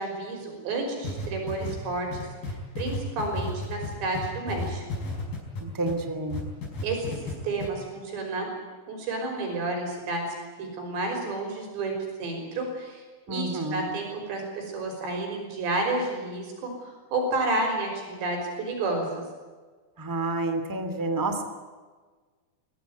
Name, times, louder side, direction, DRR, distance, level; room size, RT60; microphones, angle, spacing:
voice 1, 0.0-5.0 6.8-8.5 8.9-10.2 10.6-11.9 12.2-19.2, right 2 dB, 75° right, 2 dB, 7.7 m, -31 dB
sound 1, 1.0-6.0 6.3-7.3 7.6-7.7, left 3 dB, 55° left, 6.6 m, -33 dB
voice 2, 5.6-6.4 13.3-13.9 20.0-21.4, right 2 dB, 10° right, 8 dB, 1.3 m, -29 dB
24.0 x 17.0 x 9.4 m, 1.4 s
omnidirectional pair, 5.1 m